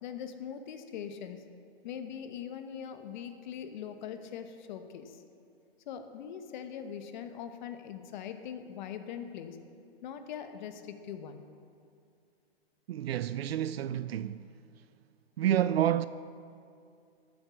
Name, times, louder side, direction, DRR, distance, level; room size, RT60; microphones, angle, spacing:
voice 1, 0.0-1.4 1.8-5.2 5.9-9.6 10.0-11.4, left 8 dB, 45° left, 1.2 m, -41 dB
voice 2, 12.9-14.5 15.4-16.1, right 11 dB, 75° right, 0.5 m, -29 dB
12.5 x 8.1 x 7.3 m
hypercardioid pair, 140°, 31 cm